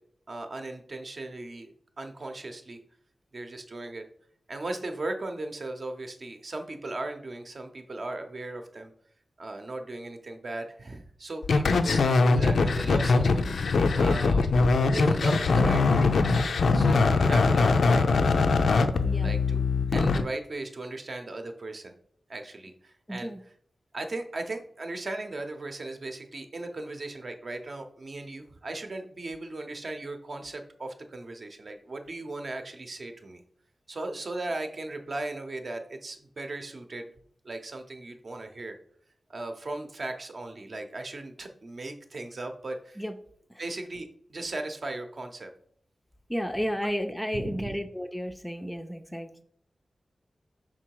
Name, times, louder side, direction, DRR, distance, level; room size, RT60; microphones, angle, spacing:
voice 1, 0.3-2.8 3.3-4.0 4.5-8.9 9.4-14.5 14.9-16.1 16.7-18.3 19.2-19.6 19.9-21.9 22.3-23.3 23.9-33.4 33.9-37.1 37.4-38.8 39.3-43.0 43.6-45.5 47.3-47.7, right 2 dB, 50° right, 5 dB, 0.7 m, -37 dB
sound 1, 11.4-20.2, left 3 dB, 90° left, 0.4 m, -22 dB
voice 2, 19.0-19.3 23.1-23.4 43.0-43.1 43.5-43.6 46.3-49.4, equal, 5° left, 6 dB, 0.4 m, -32 dB
6.0 x 3.8 x 4.6 m, 0.62 s
wide cardioid pair, 135°, 0 cm